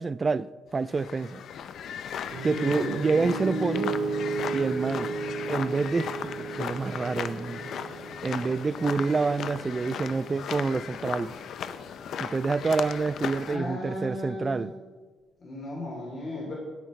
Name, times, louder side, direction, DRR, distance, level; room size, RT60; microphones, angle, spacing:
voice 1, 0.0-1.4 2.4-4.0 4.5-5.1 5.5-7.7 8.2-11.3 12.2-14.7, right 4 dB, 25° right, 0.3 m, -28 dB
sound 1, 0.8-13.6, left 8 dB, 65° left, 0.6 m, -37 dB
voice 2, 2.3-2.9 13.4-14.8 15.4-16.5, left 1 dB, 40° left, 3.1 m, -35 dB
Piano, 2.3-10.4, right 4 dB, 80° right, 2.8 m, -34 dB
17.0 x 9.2 x 3.2 m
cardioid pair, 115°, 0 cm